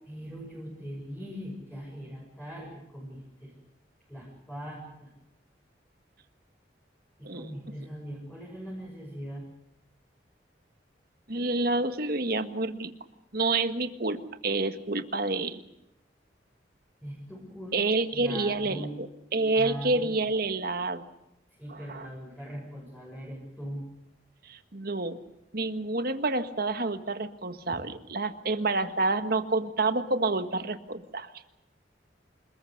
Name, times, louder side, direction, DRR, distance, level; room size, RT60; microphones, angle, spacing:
voice 1, 0.1-3.5 4.1-5.1 7.2-9.4 17.0-17.8 18.1-19.0 19.6-20.1 21.6-23.8 27.7-27.8, equal, 5° left, -3 dB, 7.0 m, -40 dB
voice 2, 11.3-12.9 13.3-15.6 17.7-19.1 19.3-21.0 21.7-22.1 24.4-25.2 25.5-31.3, right 3 dB, 55° right, 8 dB, 1.7 m, -28 dB
27.5 x 20.5 x 6.6 m, 0.88 s
head